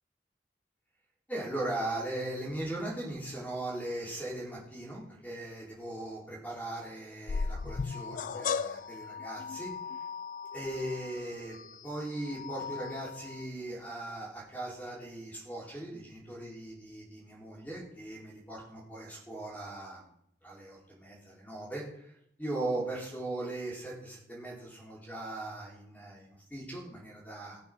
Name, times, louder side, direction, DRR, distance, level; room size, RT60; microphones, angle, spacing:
voice 1, 1.3-9.7 10.5-11.6 11.8-20.1 20.4-22.1 22.4-27.6, right 1 dB, 10° left, -4 dB, 4.1 m, -39 dB
sound 1, 7.3-13.4, left 5 dB, 45° left, 0.4 m, -37 dB
16.5 x 6.9 x 6.3 m, 0.74 s
head